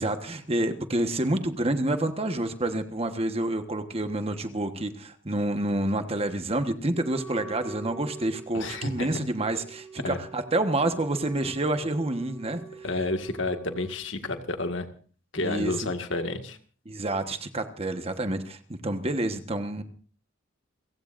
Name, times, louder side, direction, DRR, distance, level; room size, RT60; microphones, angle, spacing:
voice 1, 0.0-12.6 15.3-15.9 16.9-19.8, right 1 dB, 30° right, 8 dB, 1.3 m, -28 dB
Wind instrument woodwind instrument, 6.9-14.0, right 3 dB, 5° left, 4.2 m, -44 dB
voice 2, 8.5-9.2 10.0-10.2 12.8-14.9 15.3-16.6, left 2 dB, 70° left, 6 dB, 1.9 m, -30 dB
29.5 x 16.0 x 2.6 m, 0.40 s
head